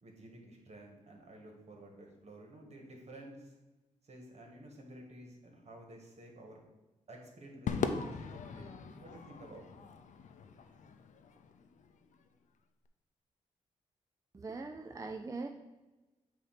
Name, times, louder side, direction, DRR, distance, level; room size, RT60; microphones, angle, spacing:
voice 1, 0.0-3.5 4.0-6.6 7.1-9.7, right 1 dB, 55° right, 1 dB, 1.7 m, -52 dB
Crowd / Fireworks, 7.7-12.1, left 5 dB, 75° left, 0.5 m, -40 dB
voice 2, 14.3-15.5, right 3 dB, 25° right, 4 dB, 0.5 m, -41 dB
8.0 x 2.8 x 5.8 m, 1.1 s
cardioid pair, 75°, 13 cm